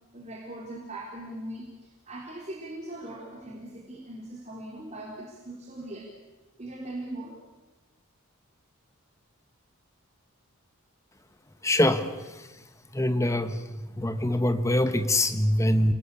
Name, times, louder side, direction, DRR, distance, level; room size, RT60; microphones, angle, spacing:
voice 1, 0.1-6.1 6.6-7.4, right 1 dB, 30° right, -2 dB, 3.6 m, -40 dB
voice 2, 11.6-12.0 12.9-13.6 14.0-15.9, left 1 dB, 15° left, 9 dB, 1.3 m, -23 dB
29.0 x 19.5 x 8.4 m, 1.1 s
head